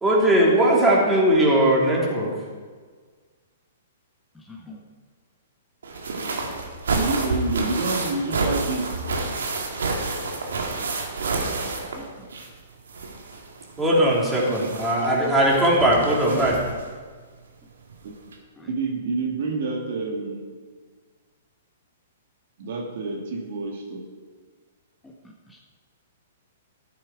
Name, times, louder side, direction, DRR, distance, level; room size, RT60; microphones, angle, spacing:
voice 1, 0.0-2.3 13.8-16.5, right 1 dB, 10° right, -4 dB, 3.1 m, -19 dB
voice 2, 4.5-4.8 11.3-12.3 18.6-18.7 25.0-25.1 25.5-25.6, left 1 dB, 10° left, 0 dB, 1.2 m, -45 dB
sound 1, 5.8-12.6 12.9-16.8 17.9-18.0 18.3-18.4, right 3 dB, 75° right, 2.0 m, -29 dB
voice 3, 6.9-9.1 14.6-14.7 18.0-18.1 18.6-20.4 22.6-24.1, right 3 dB, 60° right, 1 dB, 2.2 m, -28 dB
13.0 x 7.6 x 4.9 m, 1.5 s
hypercardioid pair, 120°, 0 cm